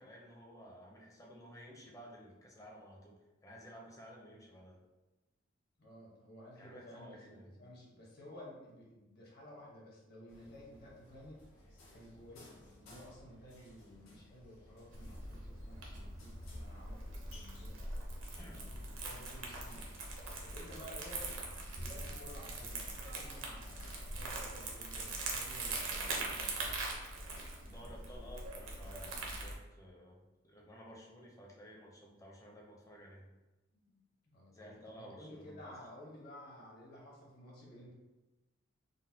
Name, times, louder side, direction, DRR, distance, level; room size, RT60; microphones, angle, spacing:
voice 1, 0.0-4.8 6.6-7.5 18.4-18.6 27.7-33.3 34.5-35.6, equal, 15° left, -2 dB, 0.5 m, -54 dB
voice 2, 5.8-11.4 11.9-17.8 18.4-19.9 20.4-26.8 33.7-37.9, left 1 dB, 50° left, -3 dB, 0.9 m, -54 dB
sound 1, 10.3-28.5, left 1 dB, 80° left, 0.8 m, -60 dB
Crumpling crinkling, 14.9-29.5, right 2 dB, 70° right, 0.7 m, -42 dB
3.9 x 2.1 x 2.7 m, 1.1 s
head